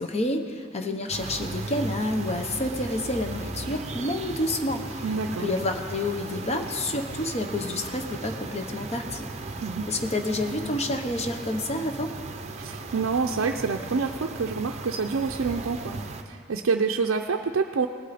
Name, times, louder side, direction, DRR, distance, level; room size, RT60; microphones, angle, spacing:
voice 1, 0.0-9.3 9.9-12.1, left 1 dB, 30° left, 5 dB, 0.8 m, -29 dB
sound 1, 1.1-16.2, right 3 dB, 35° right, 0.7 m, -37 dB
sound 2, 1.2-15.8, equal, 50° left, 2.9 m, -48 dB
voice 2, 5.0-5.5 9.6-9.9 12.6-16.0 16.3-17.9, right 5 dB, 70° right, 2 dB, 0.5 m, -27 dB
19.0 x 8.2 x 4.2 m, 2.2 s
head